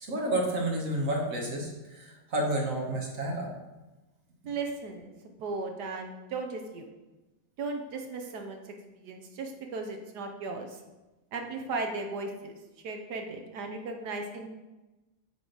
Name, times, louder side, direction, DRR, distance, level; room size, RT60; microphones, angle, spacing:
voice 1, 0.0-3.5, right 1 dB, 45° right, 0 dB, 1.4 m, -30 dB
voice 2, 4.5-5.1 5.4-6.9 7.6-10.8 11.3-12.6 12.8-14.5, right 3 dB, 65° right, 4 dB, 1.1 m, -36 dB
9.0 x 3.7 x 3.9 m, 1.1 s
omnidirectional pair, 2.2 m